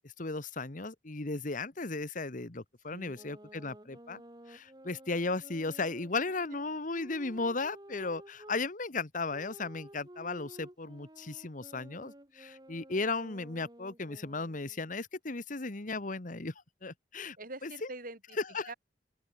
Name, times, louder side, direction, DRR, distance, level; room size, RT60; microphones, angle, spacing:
voice 1, 0.0-4.2 4.5-16.5 16.8-17.4 17.6-17.9 18.4-18.7, left 3 dB, 50° left, 1.4 m, -36 dB
voice 2, 2.9-3.4 17.4-18.4 18.7-18.8, right 2 dB, 50° right, 7.2 m, -45 dB
sound 1, 3.1-8.6 9.3-14.9, right 1 dB, 25° right, 5.1 m, -53 dB
open air
head